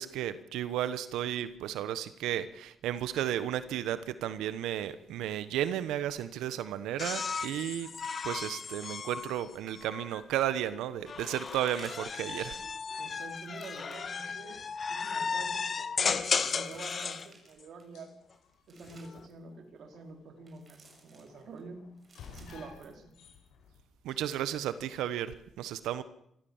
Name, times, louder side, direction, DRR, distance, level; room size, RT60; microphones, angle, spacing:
voice 1, 0.0-7.9 8.2-12.6 24.0-26.0, right 11 dB, 90° right, 13 dB, 1.2 m, -33 dB
sound 1, 6.8-6.9 7.0-9.1 9.8-10.1 10.7-10.8 11.2-12.5 13.0-14.3 14.7-14.8 15.0-15.2 15.9-17.9 18.3-19.3 20.5-21.6 22.0-23.5 23.7-23.8 24.3-24.6, right 3 dB, 40° right, 6.2 m, -58 dB
sound 2, 7.0-10.3 11.1-17.3 18.7-19.3, left 5 dB, 45° left, 1.8 m, -35 dB
sound 3, 9.5-25.2, left 5 dB, 80° left, 5.6 m, -59 dB
voice 2, 13.0-18.1 18.7-21.9 22.3-23.2, right 3 dB, 65° right, 4 dB, 4.8 m, -48 dB
26.0 x 13.5 x 7.3 m, 0.74 s
cardioid pair, 90°, 0 cm